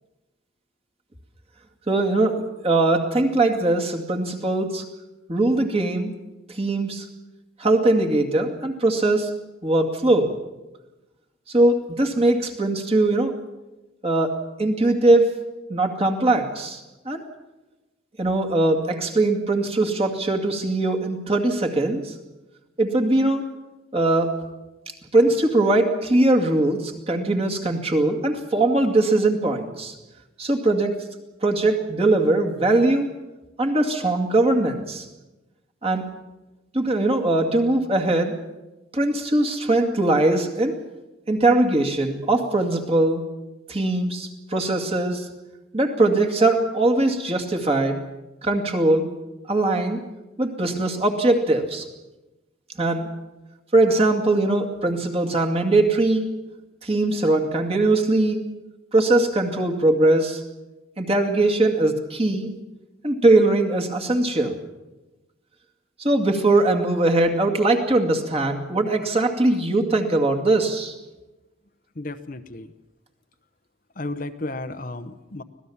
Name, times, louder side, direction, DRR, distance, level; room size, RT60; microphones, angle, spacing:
voice 1, 1.9-4.9 5.3-6.1 6.5-7.1 7.6-9.3 9.6-10.4 11.5-13.4 14.0-15.4 15.7-17.2 18.2-22.2 22.8-23.4 23.9-24.4 25.1-30.0 30.4-31.0 31.4-33.1 33.6-35.1 35.8-36.1 36.7-38.4 38.9-40.8 41.3-43.3 43.7-45.3 45.7-48.0 48.4-49.1 49.5-50.1 50.4-51.8 52.8-53.1 53.7-56.3 56.8-58.5 58.9-60.4 61.0-62.5 63.0-64.6 66.0-70.9, right 2 dB, 30° right, 2 dB, 2.3 m, -21 dB
voice 2, 72.0-72.7 74.0-75.4, left 2 dB, 45° left, 9 dB, 0.9 m, -33 dB
25.0 x 17.5 x 7.2 m, 1.1 s
head